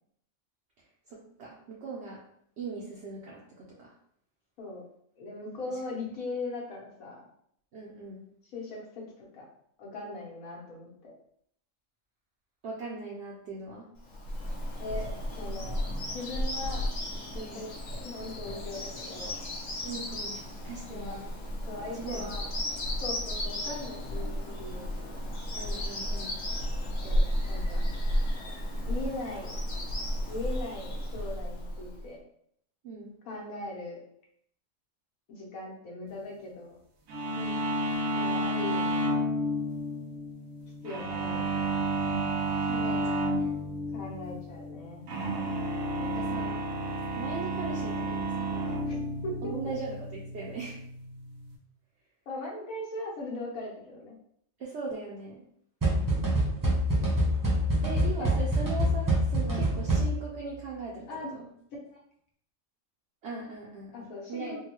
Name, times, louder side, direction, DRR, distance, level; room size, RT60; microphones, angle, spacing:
voice 1, 1.1-2.2 2.6-3.9 7.7-8.2 12.6-13.9 17.3-17.7 19.8-20.4 20.6-21.3 21.9-22.3 25.6-26.4 32.8-33.1 37.4-37.6 42.6-43.6 46.0-46.6 47.2-48.8 49.4-50.8 54.6-55.5 57.8-61.1 61.4-61.5 63.2-64.6, right 4 dB, 60° right, -4 dB, 0.8 m, -39 dB
voice 2, 5.2-7.2 8.5-9.5 9.8-11.1 14.8-15.8 16.1-16.9 17.3-17.7 18.0-19.4 20.9-21.2 21.7-22.5 23.0-25.2 27.0-27.2 27.5-27.8 28.8-29.5 30.3-32.2 33.2-34.0 35.3-36.8 38.1-39.1 40.8-41.8 43.9-45.0 48.8-49.0 49.2-49.8 52.3-54.1 55.8-56.1 58.2-58.4 59.5-59.7 61.1-61.3 61.9-62.0 63.9-64.6, left 2 dB, 90° left, -2 dB, 1.4 m, -39 dB
Bird vocalization bird call bird song, 14.0-32.0, equal, 70° left, 1.2 m, -33 dB
sound 1, 37.1-51.6, right 1 dB, 85° right, 1.1 m, -31 dB
sound 2, 55.8-60.4, right 1 dB, 20° right, 0.7 m, -26 dB
3.8 x 2.2 x 2.9 m, 0.68 s
omnidirectional pair, 1.4 m